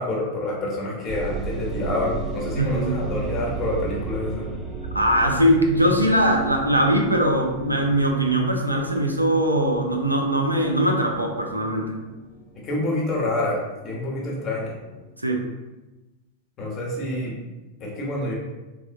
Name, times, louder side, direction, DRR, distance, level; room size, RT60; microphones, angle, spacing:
voice 1, 0.0-4.5 12.6-14.7 16.6-17.4 17.8-18.3, left 1 dB, 30° left, -3 dB, 0.9 m, -27 dB
sound 1, 1.1-15.1, right 3 dB, 15° right, 0.5 m, -35 dB
voice 2, 2.6-3.0 4.9-12.0 15.2-15.4, right 1 dB, 85° right, 3 dB, 0.3 m, -21 dB
3.3 x 2.0 x 2.5 m, 1.1 s
figure-of-eight pair, 90°, 0 cm